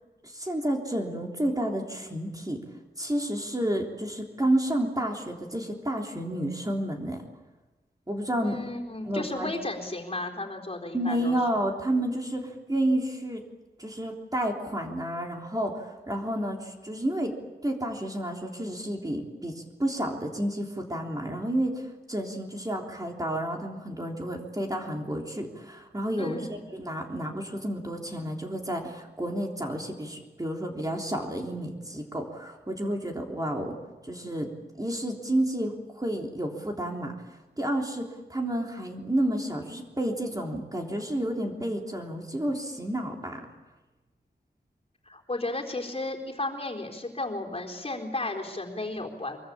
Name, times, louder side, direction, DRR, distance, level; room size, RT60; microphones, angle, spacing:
voice 1, 0.2-2.6 3.0-7.2 8.1-8.6 9.1-9.5 10.9-13.4 13.8-17.3 17.6-33.8 34.1-34.5 34.8-37.1 37.6-43.4, right 1 dB, 20° right, 1 dB, 3.4 m, -30 dB
voice 2, 8.4-11.4 26.2-26.6 45.1-49.4, left 2 dB, 35° left, 2 dB, 4.1 m, -34 dB
24.5 x 23.0 x 8.8 m, 1.1 s
wide cardioid pair, 90°, 18 cm